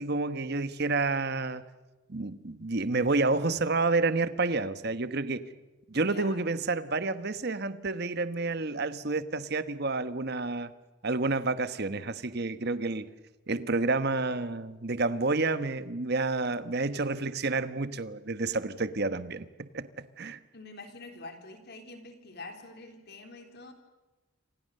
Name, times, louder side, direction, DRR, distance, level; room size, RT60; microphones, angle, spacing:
voice 1, 0.0-1.6 2.1-5.5 5.9-10.7 11.0-13.1 13.5-20.4, right 3 dB, 50° right, 1.2 m, -29 dB
voice 2, 5.9-6.4 20.5-23.7, left 2 dB, 50° left, 4.0 m, -46 dB
28.0 x 26.5 x 6.7 m
head